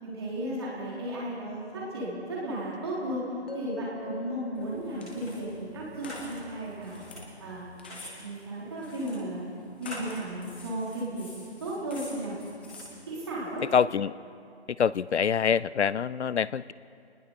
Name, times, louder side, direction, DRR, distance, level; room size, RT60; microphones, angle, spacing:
voice 1, 0.0-3.2 3.5-7.0 7.4-9.5 9.8-12.3 13.1-13.6, right 1 dB, 25° right, -6 dB, 4.1 m, -35 dB
sound 1, 3.5-7.6, left 4 dB, 60° left, 3.0 m, -46 dB
sound 2, 4.5-13.7, left 1 dB, 10° left, 1.6 m, -46 dB
voice 2, 13.7-14.1 14.8-16.7, left 7 dB, 80° left, 19 dB, 0.6 m, -25 dB
30.0 x 20.0 x 4.5 m, 2.5 s
hypercardioid pair, 180°, 33 cm